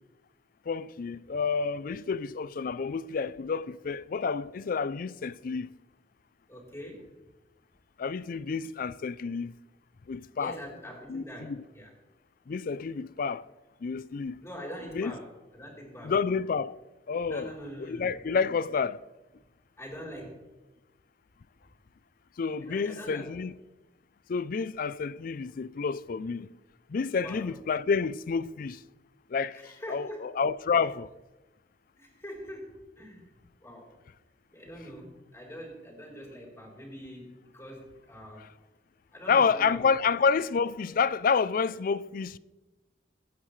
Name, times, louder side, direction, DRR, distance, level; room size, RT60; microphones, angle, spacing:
voice 1, 0.7-5.7 8.0-9.5 10.1-10.6 11.1-11.6 12.5-13.4 13.8-14.4 14.9-15.1 16.0-16.8 17.1-19.0 22.4-23.5 24.3-26.5 26.9-28.8 29.3-31.1 39.3-42.4, left 5 dB, 50° left, 0.4 m, -29 dB
voice 2, 6.5-7.1 10.4-11.9 14.4-16.1 17.3-18.1 19.8-20.4 22.6-23.3 27.2-27.5 29.5-30.3 32.0-33.3 33.6-33.9 34.5-38.5 39.1-39.8, equal, 15° left, 3.7 m, -43 dB
22.0 x 9.3 x 3.2 m
head